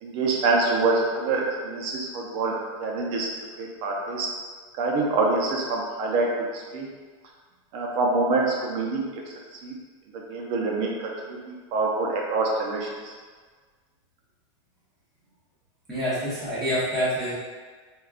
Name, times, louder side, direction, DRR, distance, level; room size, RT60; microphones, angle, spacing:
voice 1, 0.0-3.3 3.6-4.3 4.8-6.9 7.7-9.1 9.6-9.7 10.1-13.1, right 3 dB, 35° right, -1 dB, 0.5 m, -26 dB
voice 2, 15.9-17.3, equal, ahead, -13 dB, 0.7 m, -26 dB
3.5 x 2.3 x 2.4 m, 1.5 s
supercardioid pair, 165°, 16 cm